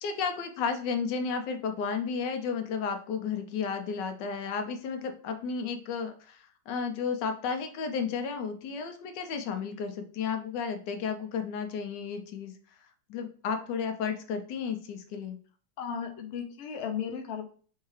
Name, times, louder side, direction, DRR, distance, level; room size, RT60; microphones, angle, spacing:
voice 1, 0.0-12.5 13.1-15.4, left 6 dB, 85° left, 7 dB, 1.3 m, -33 dB
voice 2, 15.8-17.5, left 7 dB, 60° left, 4 dB, 0.7 m, -35 dB
4.6 x 2.8 x 3.1 m, 0.43 s
omnidirectional pair, 1.8 m